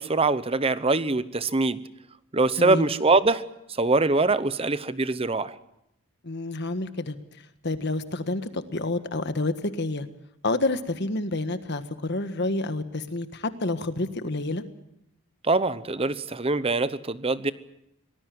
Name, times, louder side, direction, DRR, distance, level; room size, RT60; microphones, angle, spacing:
voice 1, 0.0-1.8 2.3-3.4 3.7-5.6 15.4-17.5, right 3 dB, 25° right, 15 dB, 0.8 m, -23 dB
voice 2, 2.6-2.9 6.2-7.2 7.6-10.1 10.4-14.6, left 2 dB, 50° left, 10 dB, 1.5 m, -29 dB
24.5 x 19.0 x 7.7 m, 0.81 s
head